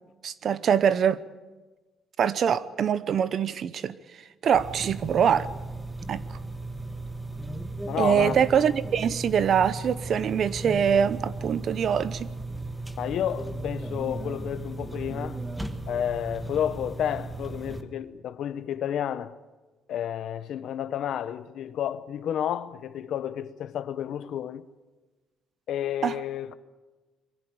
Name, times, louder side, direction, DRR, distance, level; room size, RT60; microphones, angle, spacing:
voice 1, 0.2-1.2 2.2-4.0 4.4-5.5 6.1-6.2 8.0-12.3 26.0-26.1, right 8 dB, 45° right, 0.8 m, -24 dB
sound 1, 4.5-17.8, right 2 dB, 5° right, 1.3 m, -36 dB
voice 2, 7.9-8.3 13.0-15.4 15.9-19.3 19.9-24.7 25.7-26.5, left 10 dB, 60° left, 0.9 m, -31 dB
23.0 x 15.5 x 9.0 m
cardioid pair, 160°, 0 cm